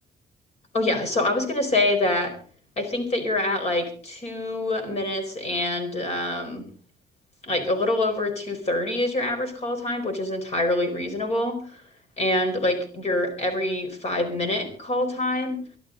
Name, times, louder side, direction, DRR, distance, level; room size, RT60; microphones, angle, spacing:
voice 1, 0.7-2.3 2.8-6.6 7.4-11.8 12.2-15.6, left 1 dB, 40° left, 7 dB, 4.4 m, -25 dB
24.0 x 12.5 x 3.9 m, 0.42 s
cardioid pair, 160°, 17 cm